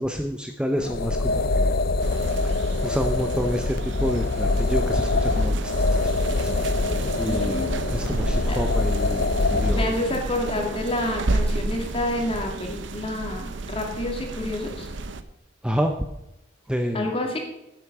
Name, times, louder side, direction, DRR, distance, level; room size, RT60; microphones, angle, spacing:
voice 1, 0.0-1.7 2.4-5.7 6.4-6.5 7.2-10.0 15.6-15.9 16.7-17.1, equal, 5° right, 5 dB, 0.7 m, -28 dB
sound 1, 0.8-9.9, left 2 dB, 50° left, 0.6 m, -24 dB
sound 2, 2.0-15.2, right 2 dB, 65° right, 0.8 m, -31 dB
voice 2, 7.2-7.7 8.5-8.6 9.7-14.9 16.9-17.4, left 1 dB, 30° left, 2 dB, 2.3 m, -28 dB
10.5 x 8.2 x 6.0 m, 0.88 s
head